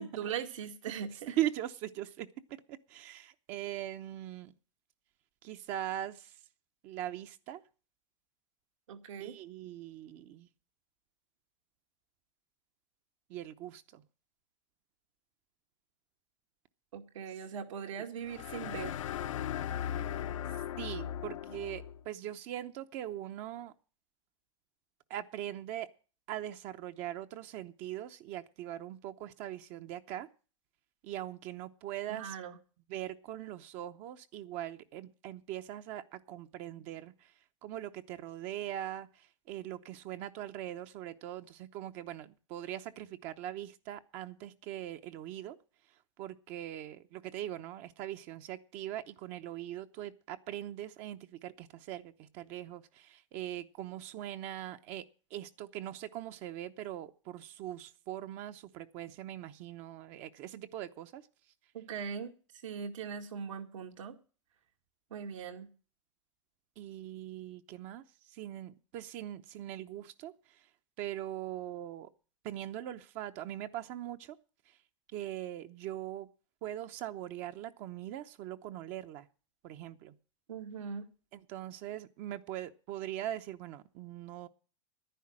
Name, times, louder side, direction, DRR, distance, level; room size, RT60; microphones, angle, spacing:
voice 1, 0.2-1.4 8.9-9.4 16.9-19.0 32.1-32.6 61.7-62.3 62.6-64.2 65.1-65.7 80.5-81.1, right 7 dB, 80° right, 4 dB, 2.2 m, -40 dB
voice 2, 1.4-2.3 2.9-4.5 5.4-6.3 6.8-7.6 9.2-10.5 13.3-14.0 20.8-23.7 25.1-25.9 26.3-30.3 31.0-32.4 32.9-37.1 37.6-39.1 39.5-45.6 46.2-55.0 55.3-61.2 66.8-68.0 68.3-70.3 71.0-72.1 72.4-74.3 75.1-76.3 76.6-79.3 79.6-80.1 81.3-84.5, right 12 dB, 45° right, 8 dB, 0.8 m, -41 dB
sound 1, 18.2-22.0, left 10 dB, 80° left, 0.9 m, -37 dB
11.0 x 10.0 x 7.4 m, 0.38 s
hypercardioid pair, 120°, 16 cm